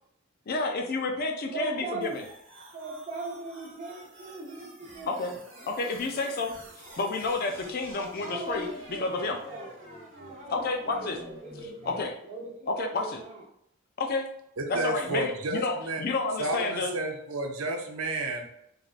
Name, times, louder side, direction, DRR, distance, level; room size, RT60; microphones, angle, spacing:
voice 1, 0.5-2.2 5.1-5.3 5.7-9.4 10.5-11.2 11.9-12.1 12.7-13.1 14.0-14.3 14.7-16.9, left 3 dB, 45° left, 4 dB, 0.4 m, -30 dB
voice 2, 1.4-2.2 2.7-5.3 8.2-9.7 10.3-13.4, right 2 dB, 35° right, -3 dB, 0.9 m, -39 dB
sound 1, 2.0-12.0, right 1 dB, 65° right, 1.0 m, -48 dB
voice 3, 14.6-16.0 16.4-18.5, right 2 dB, 80° right, 2 dB, 0.6 m, -31 dB
3.2 x 2.6 x 2.4 m, 0.74 s
head